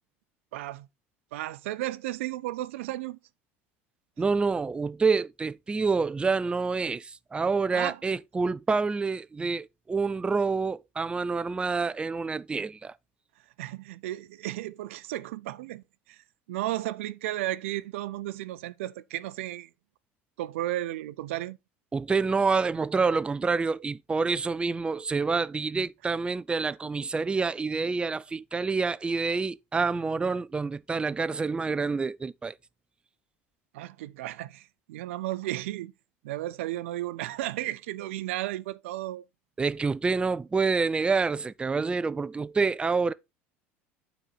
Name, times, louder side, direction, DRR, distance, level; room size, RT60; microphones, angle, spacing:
voice 1, 0.5-0.9 1.3-3.2 7.7-8.0 13.6-19.7 20.4-21.6 33.7-35.9 36.2-39.2, right 15 dB, 75° right, 0.4 m, -34 dB
voice 2, 4.2-12.9 21.9-32.5 39.6-43.1, right 4 dB, 15° right, 0.4 m, -27 dB
8.9 x 4.1 x 4.1 m
hypercardioid pair, 80°, 7 cm